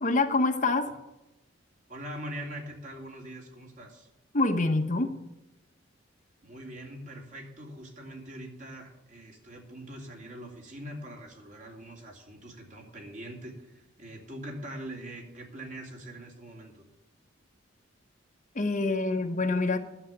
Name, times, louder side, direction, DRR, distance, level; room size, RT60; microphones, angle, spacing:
voice 1, 0.0-0.9 4.3-5.1 18.5-19.8, left 2 dB, 40° left, 6 dB, 1.1 m, -26 dB
voice 2, 1.9-4.1 6.4-16.8, right 1 dB, 40° right, 1 dB, 2.9 m, -43 dB
11.0 x 7.3 x 9.1 m, 0.96 s
head